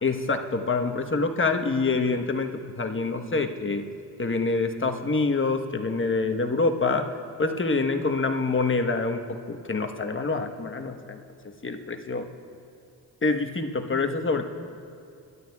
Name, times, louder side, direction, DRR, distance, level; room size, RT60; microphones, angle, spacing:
voice 1, 0.0-3.8 4.2-7.1 7.4-11.2 11.6-12.3 13.2-14.5, left 3 dB, 30° left, 5 dB, 1.2 m, -26 dB
27.5 x 11.0 x 2.4 m, 2.4 s
supercardioid pair, 50°, 42 cm